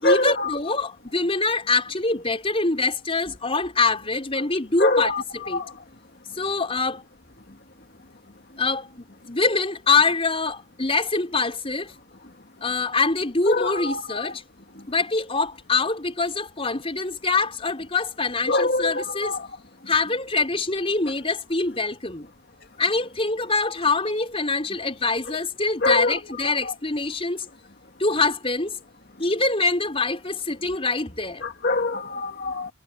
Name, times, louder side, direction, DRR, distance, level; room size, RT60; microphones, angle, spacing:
voice 1, 0.0-5.6 6.3-7.0 8.6-11.9 12.6-14.4 14.9-19.4 19.9-22.3 22.8-27.5 28.0-28.7 29.2-31.4, left 3 dB, 25° left, 4.4 m, -24 dB
voice 2, 18.5-18.8 25.8-25.9 31.6-32.7, left 2 dB, 45° left, 2.0 m, -21 dB
head